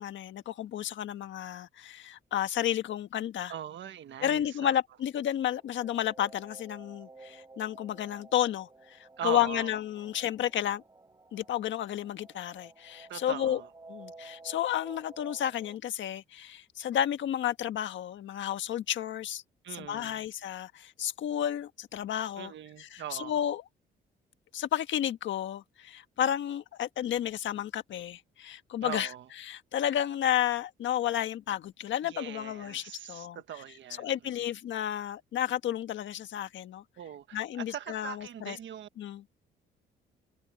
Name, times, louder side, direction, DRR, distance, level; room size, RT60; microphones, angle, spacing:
voice 1, 0.0-3.5 4.2-9.0 9.2-10.8 11.3-13.6 13.9-19.4 19.8-22.5 22.8-23.6 24.5-29.1 29.4-33.4 34.0-36.8 37.3-38.6 39.0-39.2, left 11 dB, 70° left, 1.5 m, -32 dB
voice 2, 3.5-4.7 9.2-10.1 13.1-13.7 19.6-20.2 22.4-23.4 28.8-29.3 32.0-34.1 37.0-38.9, right 10 dB, 70° right, 1.5 m, -41 dB
sound 1, 5.1-15.8, right 3 dB, 20° right, 3.8 m, -53 dB
cardioid pair, 90°, 20 cm